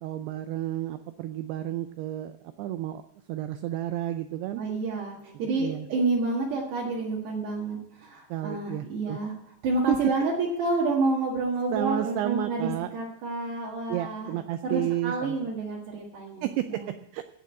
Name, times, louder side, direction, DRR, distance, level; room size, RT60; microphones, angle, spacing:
voice 1, 0.0-2.3 2.6-3.0 3.3-4.6 5.6-5.9 8.3-9.2 9.9-10.0 11.7-12.9 13.9-15.5 16.4-17.2, right 13 dB, 85° right, 9 dB, 2.3 m, -31 dB
voice 2, 4.6-9.3 9.6-14.4 14.6-16.9, right 3 dB, 65° right, -4 dB, 3.8 m, -29 dB
16.0 x 6.4 x 8.6 m, 0.76 s
omnidirectional pair, 5.4 m